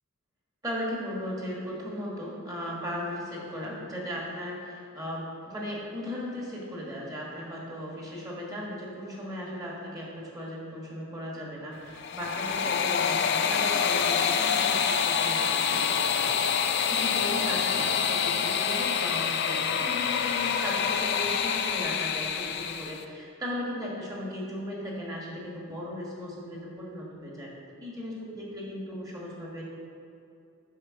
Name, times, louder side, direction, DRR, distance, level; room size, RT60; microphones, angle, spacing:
voice 1, 0.6-29.6, equal, 15° right, -4 dB, 1.5 m, -37 dB
sound 1, 11.9-23.0, left 7 dB, 50° left, 0.4 m, -26 dB
6.5 x 5.4 x 6.3 m, 2.6 s
head